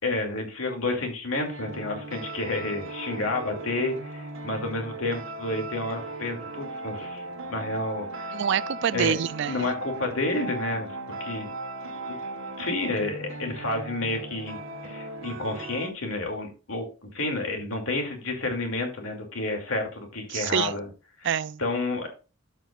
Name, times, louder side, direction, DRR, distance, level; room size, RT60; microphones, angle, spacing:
voice 1, 0.0-7.2 7.5-8.3 8.9-9.1 9.5-11.5 12.0-12.2 12.6-20.9 21.2-21.3 21.6-22.1, left 2 dB, 90° left, 2.5 m, -30 dB
sound 1, 1.3-15.9, right 2 dB, 80° right, 1.4 m, -37 dB
voice 2, 8.3-9.7 20.3-20.7 21.2-21.6, right 8 dB, 60° right, 0.4 m, -26 dB
12.5 x 5.9 x 2.4 m
head